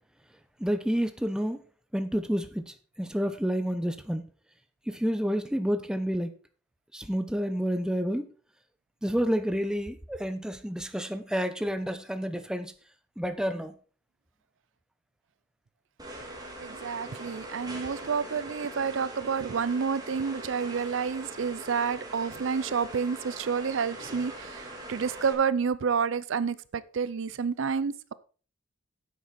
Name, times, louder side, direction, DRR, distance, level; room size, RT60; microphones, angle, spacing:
voice 1, 0.6-1.6 1.9-2.6 3.0-4.2 4.9-6.3 6.9-8.3 9.0-12.7 13.2-13.7, equal, 5° right, 0.8 m, -29 dB
sound 1, 16.0-25.3, right 1 dB, 20° right, 2.3 m, -42 dB
voice 2, 16.6-28.1, right 6 dB, 65° right, 0.5 m, -29 dB
9.7 x 8.0 x 4.2 m
head